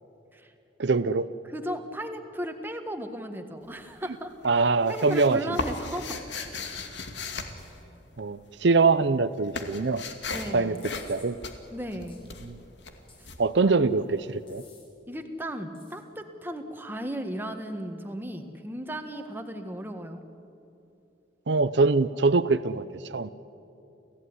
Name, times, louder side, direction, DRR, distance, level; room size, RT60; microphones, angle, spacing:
voice 1, 0.8-1.3 4.4-5.6 8.2-10.0 10.5-10.8 11.1-11.4 12.4-12.6 13.4-14.6 21.5-23.3, right 3 dB, 70° right, 13 dB, 0.6 m, -23 dB
voice 2, 1.5-4.3 4.9-6.2 6.5-6.7 10.3-10.8 11.7-12.2 13.2-13.3 15.1-20.2, equal, 10° right, 5 dB, 1.6 m, -35 dB
sound 1, 3.6-4.1 4.4-8.5 8.8-14.3, left 3 dB, 70° left, 2.3 m, -37 dB
sound 2, 10.7-11.3 12.1-12.2 13.1-13.6 14.5-14.9 15.7-16.0, left 4 dB, 30° left, 5.1 m, -54 dB
28.5 x 16.0 x 9.8 m, 2.8 s
head